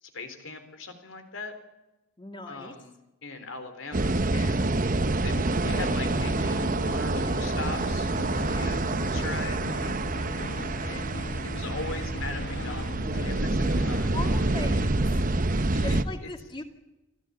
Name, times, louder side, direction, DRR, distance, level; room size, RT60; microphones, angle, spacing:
voice 1, 0.0-1.5 2.5-2.9 3.2-4.7 5.2-9.7 10.8-11.1 11.4-14.2 15.7-16.3, left 3 dB, 80° left, 8 dB, 3.8 m, -40 dB
voice 2, 2.2-2.7 14.1-15.0 15.8-16.6, left 2 dB, 25° left, 6 dB, 2.2 m, -38 dB
sound 1, 3.9-16.0, right 2 dB, 45° right, 1.0 m, -27 dB
sound 2, 5.1-14.7, left 1 dB, 60° left, 1.2 m, -39 dB
25.5 x 15.0 x 8.3 m, 1.0 s
head